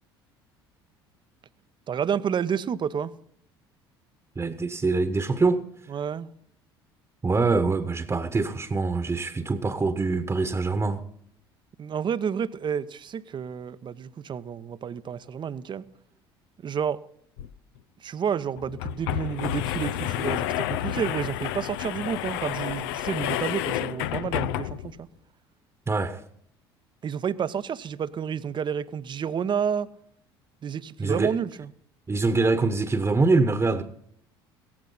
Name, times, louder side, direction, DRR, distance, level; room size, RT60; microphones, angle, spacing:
voice 1, 1.9-3.1 5.9-6.3 11.8-15.8 16.6-17.0 18.0-25.1 27.0-29.9 30.6-31.7, right 7 dB, 35° right, 0.9 m, -30 dB
voice 2, 4.4-5.6 7.2-11.0 25.9-26.2 31.0-31.3 32.1-33.8, right 3 dB, 20° right, 1.3 m, -24 dB
sound 1, 17.4-17.5 17.8-17.9 18.6-25.0, left 12 dB, 70° left, 0.8 m, -30 dB
17.5 x 15.0 x 4.0 m
hypercardioid pair, 65°, 13 cm